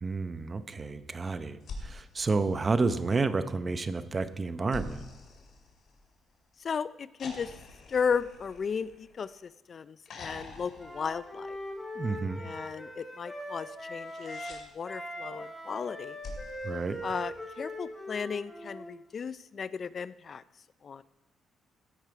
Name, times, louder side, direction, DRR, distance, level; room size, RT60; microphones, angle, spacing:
voice 1, 0.0-5.0 12.0-12.4 16.6-17.0, right 3 dB, 30° right, 11 dB, 0.8 m, -30 dB
sound 1, 1.6-3.2 4.7-6.4 7.2-9.5 10.0-11.9 13.8-14.6 16.2-17.7 19.2-19.3, left 3 dB, 65° left, 2.6 m, -46 dB
voice 2, 6.6-7.5 7.9-11.6 12.4-16.2 17.0-20.4 20.8-21.0, left 6 dB, 45° left, 16 dB, 0.4 m, -35 dB
Wind instrument woodwind instrument, 10.8-14.6 14.8-18.9, equal, 15° left, 3.2 m, -41 dB
15.0 x 9.0 x 4.8 m, 1.0 s
cardioid pair, 90°, 0 cm